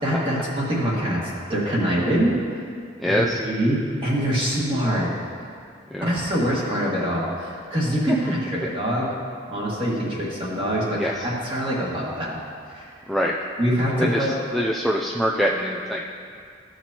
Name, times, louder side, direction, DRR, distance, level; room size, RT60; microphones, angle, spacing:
voice 1, 0.0-1.2 1.5-2.4 3.0-3.1 3.4-5.1 6.0-9.1 9.5-12.4 12.7-12.9 13.6-14.3, equal, 30° right, -5 dB, 1.8 m, -24 dB
voice 2, 3.0-3.4 5.9-6.1 11.0-11.3 13.1-13.4 14.0-16.2, equal, ahead, -2 dB, 0.3 m, -24 dB
14.5 x 6.0 x 2.9 m, 2.2 s
head